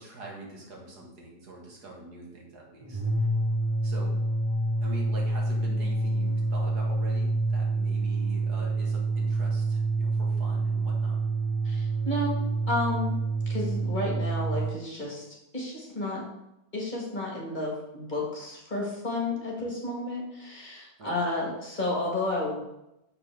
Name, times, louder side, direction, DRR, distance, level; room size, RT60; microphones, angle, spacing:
voice 1, 0.0-3.3 3.8-4.2 4.8-11.2 19.6-19.7 21.0-21.3, right 2 dB, 85° right, -2 dB, 2.1 m, -44 dB
sound 1, 2.8-14.7, right 2 dB, 15° right, 0.9 m, -27 dB
voice 2, 11.6-12.4 12.7-13.1 13.5-15.3 15.5-16.2 16.7-22.6, left 2 dB, 30° left, -3 dB, 1.5 m, -31 dB
6.6 x 5.7 x 3.3 m, 0.87 s
omnidirectional pair, 1.7 m